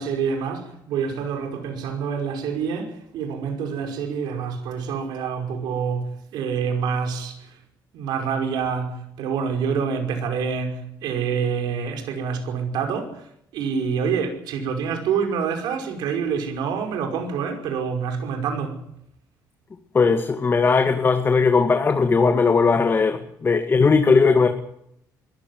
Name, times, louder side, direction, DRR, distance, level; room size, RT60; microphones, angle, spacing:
voice 1, 0.0-7.6 7.9-18.8, right 6 dB, 85° right, 5.4 m, -27 dB
voice 2, 19.9-24.5, left 4 dB, 30° left, 2.2 m, -18 dB
22.0 x 14.5 x 9.7 m
cardioid pair, 100°, 7 cm